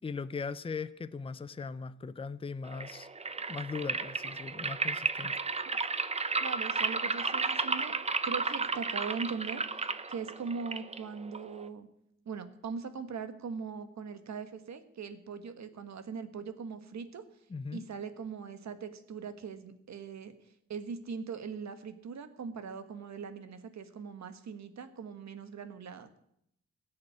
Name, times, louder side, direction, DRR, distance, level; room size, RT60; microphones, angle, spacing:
voice 1, 0.0-3.1 3.5-5.3 17.5-17.8, left 5 dB, 20° left, 0.5 m, -39 dB
sound 1, 2.7-11.7, right 4 dB, 20° right, 0.7 m, -33 dB
voice 2, 6.4-8.0 8.2-11.9 12.2-17.2 17.7-26.2, right 5 dB, 70° right, 1.5 m, -41 dB
17.0 x 6.6 x 9.8 m
wide cardioid pair, 120°, 29 cm